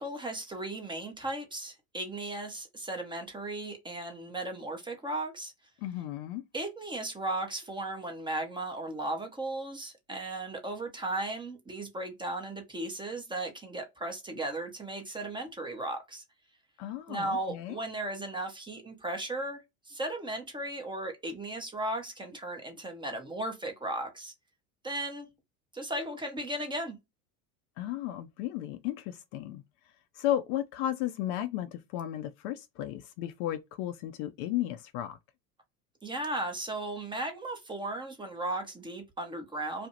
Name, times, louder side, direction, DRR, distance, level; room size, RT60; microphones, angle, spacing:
voice 1, 0.0-5.5 6.5-16.2 17.1-19.6 19.9-24.3 24.8-25.3 25.7-27.0 36.0-39.9, right 2 dB, 10° right, 0.6 m, -36 dB
voice 2, 5.8-6.4 16.8-17.8 27.8-29.6 30.2-35.2, left 12 dB, 50° left, 0.5 m, -34 dB
2.5 x 2.0 x 2.7 m
hypercardioid pair, 90°, 45 cm